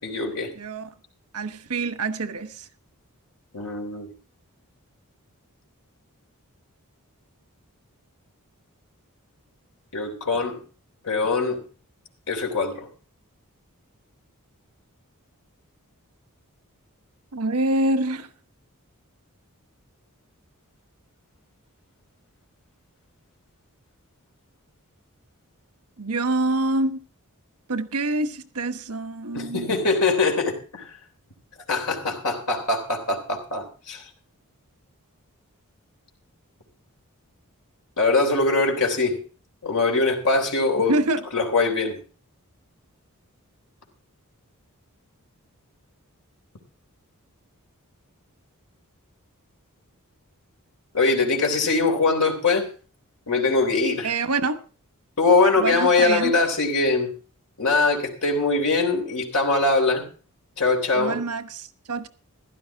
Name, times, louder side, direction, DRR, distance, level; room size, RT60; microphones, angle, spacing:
voice 1, 0.0-0.5 3.5-4.1 9.9-10.6 11.0-11.6 12.3-12.9 29.3-30.9 31.7-34.0 38.0-39.2 39.6-41.0 41.3-42.0 50.9-52.7 53.3-54.1 55.2-57.1 57.6-60.1 60.6-61.2, left 3 dB, 85° left, 3.6 m, -22 dB
voice 2, 0.5-0.9 1.3-2.7 17.3-18.3 26.0-27.0 27.7-29.7 40.9-41.2 54.0-54.6 55.6-56.3 60.9-62.1, right 2 dB, 85° right, 1.1 m, -26 dB
15.5 x 12.0 x 3.6 m
head